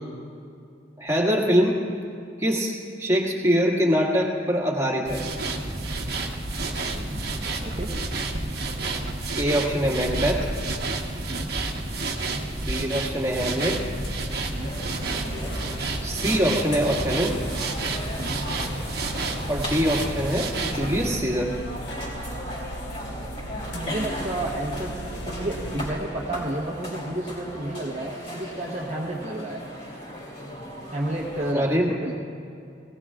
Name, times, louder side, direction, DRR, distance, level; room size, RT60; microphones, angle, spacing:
voice 1, 1.0-1.8 2.4-5.2 9.4-10.5 12.5-13.8 16.0-17.3 19.5-21.5 31.5-32.0, equal, 15° right, -3 dB, 1.9 m, -23 dB
sound 1, 5.0-21.1, right 2 dB, 60° right, 1.2 m, -30 dB
voice 2, 7.0-7.9 11.3-11.5 14.5-14.8 18.2-18.4 23.7-25.0 25.3-29.7 30.9-31.7 32.0-32.1, right 1 dB, 35° right, -3 dB, 1.0 m, -31 dB
sound 2, 13.6-25.9, right 1 dB, 65° left, 1.5 m, -37 dB
sound 3, 14.6-31.5, equal, 35° left, 3.2 m, -37 dB
19.0 x 17.5 x 2.4 m, 2.6 s
head